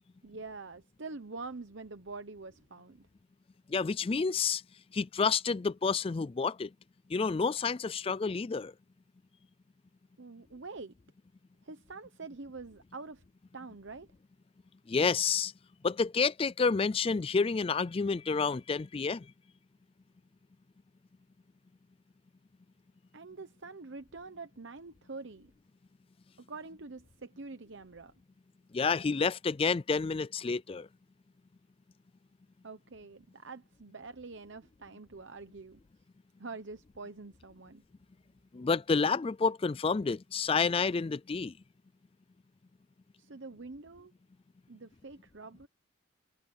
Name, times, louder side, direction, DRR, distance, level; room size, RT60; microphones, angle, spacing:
voice 1, 0.2-3.1 10.2-10.9 11.6-13.2 13.5-14.1 23.1-25.5 26.5-28.1 32.6-35.8 36.4-37.8 43.2-44.1 44.7-45.7, right 3 dB, 60° right, 1.0 m, -45 dB
voice 2, 3.7-4.6 4.9-6.7 7.1-8.7 14.9-15.5 15.8-19.3 28.7-30.9 38.5-41.5, left 5 dB, 25° left, 0.3 m, -29 dB
head